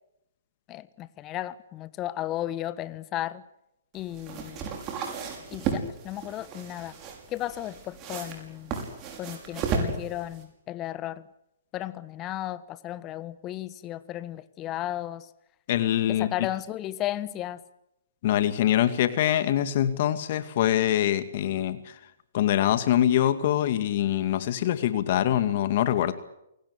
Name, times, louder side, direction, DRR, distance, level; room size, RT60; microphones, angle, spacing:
voice 1, 0.7-3.4 3.9-4.7 5.5-6.9 7.3-8.8 9.2-11.3 11.7-15.3 16.1-17.6, left 13 dB, 25° left, 16 dB, 1.3 m, -34 dB
sound 1, 3.9-10.4, right 5 dB, 30° right, 6.1 m, -34 dB
voice 2, 15.7-16.3 18.2-21.8 22.3-26.1, left 11 dB, 50° left, 12 dB, 2.2 m, -24 dB
28.5 x 18.5 x 8.4 m, 0.82 s
hypercardioid pair, 130°, 0 cm